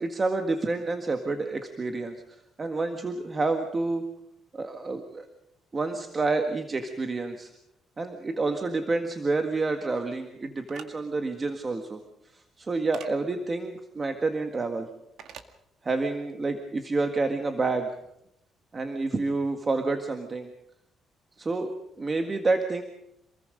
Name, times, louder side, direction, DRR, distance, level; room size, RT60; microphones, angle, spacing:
voice 1, 0.0-2.2 2.6-4.1 4.5-5.3 5.7-7.5 8.0-12.0 12.3-14.9 15.8-17.9 18.7-20.5 21.4-22.8, right 3 dB, 25° right, 6 dB, 1.8 m, -28 dB
sound 1, 10.7-10.9 12.9-13.1 15.2-15.5, right 8 dB, 75° right, 2.1 m, -43 dB
28.0 x 21.5 x 5.2 m, 0.78 s
cardioid pair, 145°, 0 cm